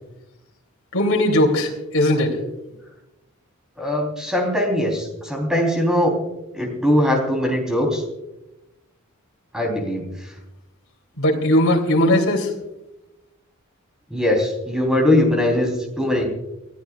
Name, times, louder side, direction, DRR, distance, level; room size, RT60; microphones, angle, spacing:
voice 1, 0.9-2.4 11.2-12.5, left 1 dB, 75° left, 0 dB, 3.1 m, -18 dB
voice 2, 3.8-6.2 6.5-8.0 9.5-10.1 14.1-16.3, left 1 dB, 5° right, 1 dB, 3.6 m, -21 dB
29.5 x 14.0 x 2.4 m, 0.94 s
head